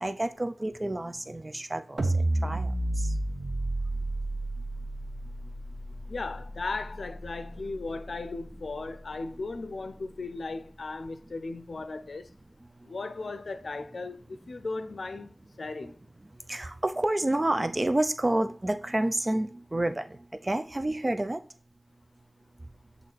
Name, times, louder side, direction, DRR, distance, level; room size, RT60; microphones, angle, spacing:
voice 1, 0.0-3.1 16.5-21.4, right 1 dB, 30° right, 0.6 m, -29 dB
sound 1, 2.0-8.3, right 1 dB, 60° right, 1.0 m, -31 dB
voice 2, 6.1-12.3 12.9-15.3 15.6-16.0, left 3 dB, 80° left, 0.6 m, -36 dB
8.4 x 3.1 x 4.0 m
wide cardioid pair, 65°, 0 cm